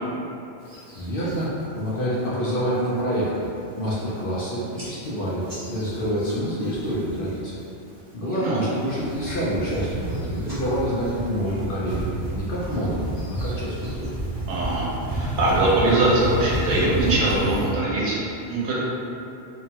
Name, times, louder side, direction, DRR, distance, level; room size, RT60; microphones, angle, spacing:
sound 1, 0.6-1.5 1.9-2.2 2.6-3.0 3.4-3.5 3.8-4.4 4.8-7.3 7.6-8.1 8.6-17.7, right 2 dB, 20° right, 0.7 m, -31 dB
voice 1, 1.0-3.5 3.8-7.6 8.1-13.0 13.3-14.1, equal, 60° left, -8 dB, 0.6 m, -27 dB
voice 2, 8.2-8.6 14.5-18.8, right 2 dB, 80° right, -6 dB, 1.0 m, -22 dB
2.8 x 2.2 x 2.7 m, 2.7 s
omnidirectional pair, 1.2 m